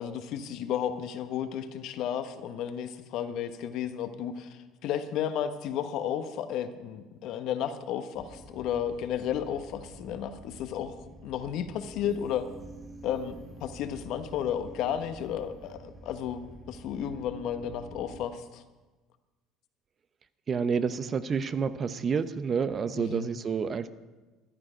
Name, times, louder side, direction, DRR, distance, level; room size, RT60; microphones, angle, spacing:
voice 1, 0.0-10.9 11.2-12.5 13.0-18.6 23.0-23.3, left 9 dB, 65° left, 9 dB, 1.1 m, -33 dB
sound 1, 8.1-18.3, right 2 dB, 20° right, 3.7 m, -48 dB
voice 2, 20.5-23.9, right 6 dB, 40° right, 13 dB, 0.8 m, -29 dB
13.5 x 11.5 x 5.1 m, 1.2 s
hypercardioid pair, 75°, 0 cm